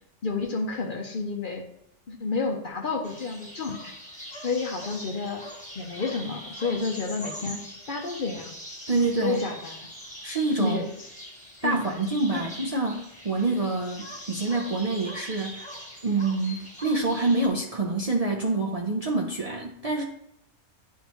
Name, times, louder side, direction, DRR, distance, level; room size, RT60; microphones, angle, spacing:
voice 1, 0.2-1.6 2.1-3.9 4.3-5.4 5.8-7.6 7.9-8.5 9.2-9.8 10.6-11.1 11.6-11.8 12.3-12.4, left 4 dB, 50° left, 3 dB, 0.8 m, -30 dB
sound 1, 3.0-17.5, equal, 5° left, 1.4 m, -42 dB
voice 2, 8.9-9.4 10.2-10.8 11.6-15.7 16.0-20.0, right 3 dB, 40° right, -1 dB, 0.6 m, -26 dB
10.0 x 3.7 x 3.0 m, 0.78 s
omnidirectional pair, 1.3 m